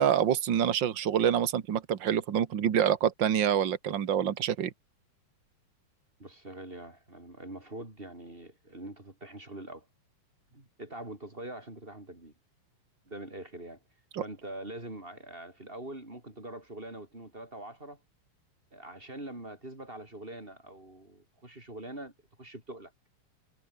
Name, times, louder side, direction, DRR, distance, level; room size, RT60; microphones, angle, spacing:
voice 1, 0.0-4.7 14.1-14.2, right 9 dB, 70° right, 1.0 m, -26 dB
voice 2, 6.2-9.9 10.5-12.3 13.1-13.8 14.2-18.0 18.7-22.9, right 1 dB, 15° right, 4.7 m, -44 dB
omnidirectional pair, 4.4 m